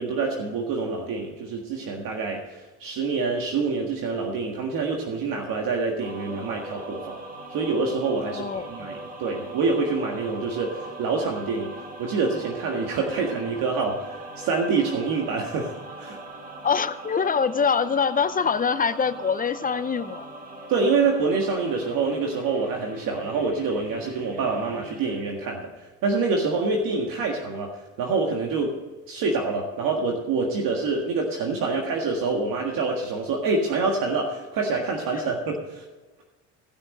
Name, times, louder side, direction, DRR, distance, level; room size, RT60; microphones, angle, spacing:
voice 1, 0.0-7.2 7.5-11.7 12.0-15.7 16.0-16.2 20.7-28.8 29.1-35.8, right 4 dB, 65° right, 1 dB, 1.8 m, -26 dB
sound 1, 6.0-25.2, right 2 dB, 25° right, 2.4 m, -40 dB
voice 2, 8.2-8.7 16.6-20.3 35.1-35.2, left 6 dB, 25° left, 13 dB, 0.6 m, -24 dB
16.5 x 6.2 x 6.4 m, 1.2 s
supercardioid pair, 95°, 37 cm